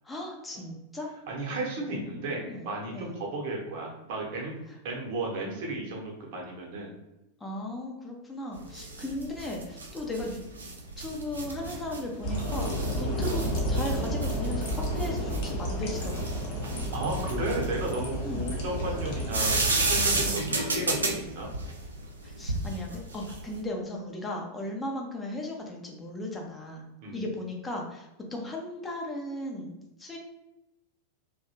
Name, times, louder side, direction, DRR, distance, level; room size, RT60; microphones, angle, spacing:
voice 1, 0.0-1.1 1.8-2.7 2.9-3.1 7.4-10.4 11.0-13.4 13.7-16.2 18.2-18.5 22.2-26.8 27.1-30.2, left 1 dB, 10° left, -1 dB, 0.5 m, -36 dB
voice 2, 1.3-4.6 4.8-6.9 16.9-21.5 27.0-27.2, right 2 dB, 50° right, -1 dB, 0.9 m, -34 dB
sound 1, 8.5-23.6, right 2 dB, 75° right, 0.4 m, -33 dB
sound 2, 12.2-20.3, equal, 45° left, 0.8 m, -31 dB
2.7 x 2.2 x 2.8 m, 0.93 s
figure-of-eight pair, 90°, 0 cm